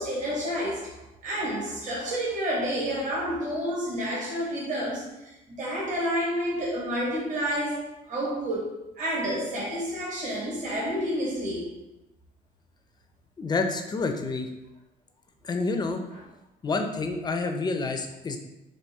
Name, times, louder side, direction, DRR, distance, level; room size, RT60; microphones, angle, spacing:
voice 1, 0.0-11.7, equal, 50° right, -5 dB, 1.3 m, -30 dB
voice 2, 13.4-14.5 15.4-16.0 16.6-18.4, left 3 dB, 25° left, 5 dB, 0.4 m, -28 dB
4.2 x 2.6 x 3.4 m, 0.94 s
cardioid pair, 110°, 17 cm